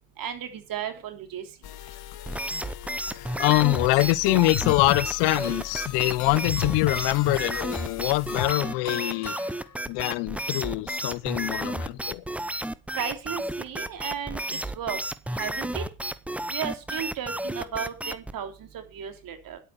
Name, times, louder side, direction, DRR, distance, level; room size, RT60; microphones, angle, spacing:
voice 1, 0.2-1.4 12.9-15.0 15.3-15.8 16.5-19.6, right 9 dB, 50° right, 3.4 m, -34 dB
sound 1, 1.6-8.5, left 11 dB, 60° left, 2.0 m, -36 dB
sound 2, 2.3-18.4, right 1 dB, 5° right, 0.6 m, -32 dB
voice 2, 3.2-9.4 9.9-12.2, left 20 dB, 75° left, 0.9 m, -24 dB
sound 3, 3.9-10.1, left 8 dB, 40° left, 2.9 m, -42 dB
11.0 x 8.4 x 6.9 m
supercardioid pair, 105°, 43 cm